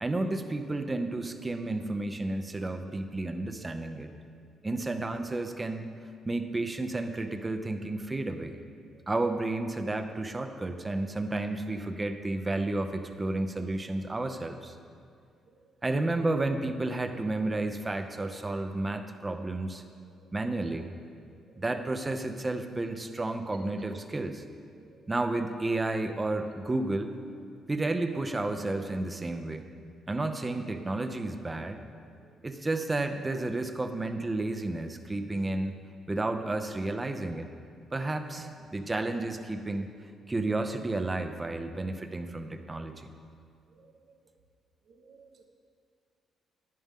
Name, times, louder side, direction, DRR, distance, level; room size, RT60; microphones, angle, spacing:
voice 1, 0.0-4.1 4.6-5.9 6.3-8.6 9.1-14.7 15.8-19.8 20.3-20.9 21.6-24.4 25.1-27.1 27.7-29.7 30.1-31.8 32.4-35.8 36.1-37.5 37.9-39.9 40.3-43.1, right 2 dB, 20° right, 7 dB, 0.7 m, -31 dB
voice 2, 43.7-44.2 44.9-45.4, right 5 dB, 65° right, 2 dB, 1.4 m, -59 dB
11.0 x 10.5 x 3.7 m, 2.2 s
cardioid pair, 90°, 0 cm